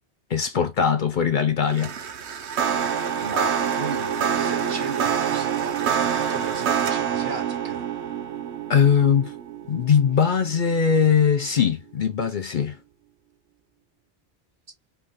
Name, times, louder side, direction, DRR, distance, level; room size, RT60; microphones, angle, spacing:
voice 1, 0.3-1.9 8.7-9.3 9.7-12.8, left 7 dB, 55° left, 0.6 m, -20 dB
sound 1, 1.7-11.0, right 8 dB, 80° right, 1.0 m, -26 dB
voice 2, 2.2-2.6 3.2-7.9, right 4 dB, 50° right, 1.1 m, -36 dB
4.6 x 3.6 x 2.6 m
omnidirectional pair, 1.1 m